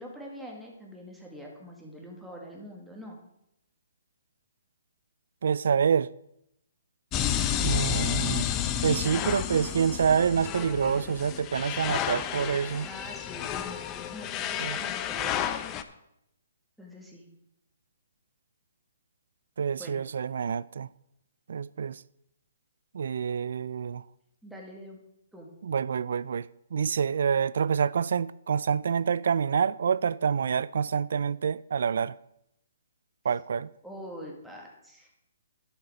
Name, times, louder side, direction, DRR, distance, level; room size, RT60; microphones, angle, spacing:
voice 1, 0.0-3.2 8.9-9.6 12.8-15.6 16.8-17.3 19.8-20.0 24.4-25.0 25.3-25.5 33.8-35.1, equal, ahead, 1.9 m, -44 dB
voice 2, 5.4-6.1 7.6-8.5 8.8-12.9 14.6-14.8 19.6-20.9 21.5-22.0 22.9-24.0 25.6-32.2 33.2-33.7, right 7 dB, 65° right, 0.3 m, -27 dB
sound 1, 7.1-15.8, left 10 dB, 20° left, 0.6 m, -31 dB
11.0 x 6.9 x 5.0 m
hypercardioid pair, 150°, 0 cm